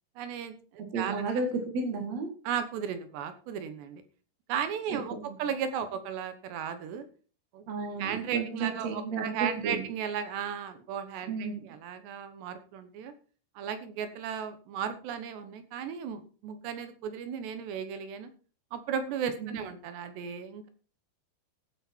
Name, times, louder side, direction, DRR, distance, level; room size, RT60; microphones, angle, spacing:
voice 1, 0.2-1.2 2.5-4.0 4.5-7.1 7.5-7.6 8.0-13.1 13.6-18.3 18.7-20.7, right 8 dB, 75° right, 10 dB, 3.3 m, -35 dB
voice 2, 0.9-2.3 5.2-5.3 7.7-9.8 11.3-11.6 19.4-19.5, right 4 dB, 45° right, 3 dB, 2.6 m, -32 dB
15.0 x 9.1 x 4.5 m, 0.38 s
omnidirectional pair, 5.1 m